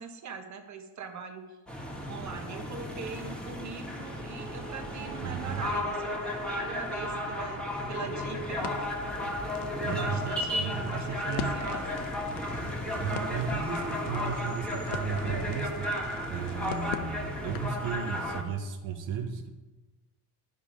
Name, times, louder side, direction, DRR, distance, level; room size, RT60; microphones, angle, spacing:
voice 1, 0.0-1.6 2.1-8.7 9.8-12.1, right 5 dB, 40° right, 5 dB, 1.2 m, -42 dB
sound 1, 1.7-18.4, left 1 dB, ahead, 1.5 m, -34 dB
voice 2, 5.2-5.7 9.8-11.5 13.0-15.9 16.3-19.5, right 6 dB, 75° right, 4 dB, 1.0 m, -34 dB
Crackle, 8.6-17.8, left 8 dB, 60° left, 0.8 m, -42 dB
9.7 x 5.2 x 5.0 m, 1.2 s
supercardioid pair, 95°, 46 cm